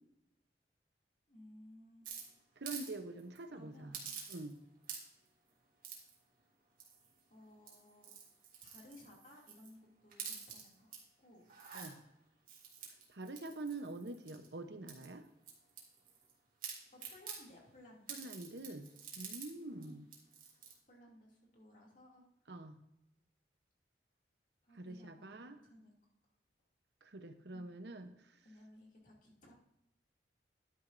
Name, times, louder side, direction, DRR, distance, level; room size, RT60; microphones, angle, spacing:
voice 1, 1.3-2.1 3.5-4.2 7.3-8.1 8.6-11.4 16.9-18.2 19.8-20.0 20.9-22.2 24.6-25.9 27.5-27.7 28.4-29.5, left 1 dB, 45° left, -2 dB, 2.5 m, -59 dB
sound 1, 2.0-2.9 3.2-3.4 3.9-4.6 4.8-5.3 5.8-6.1 6.8-7.2 7.6-9.7 10.1-11.0 11.4-11.9 12.5-14.5 14.9-16.3 16.6-17.4 18.1-19.5 19.8-19.9 20.1-20.7, right 6 dB, 50° right, 2.3 m, -48 dB
voice 2, 2.6-4.0 4.3-4.6 11.7-12.0 13.1-15.2 18.1-18.9 19.2-20.0 22.5-22.8 24.7-25.6 27.0-28.1, right 2 dB, 75° right, 8 dB, 0.8 m, -46 dB
11.5 x 9.8 x 2.6 m, 0.84 s
head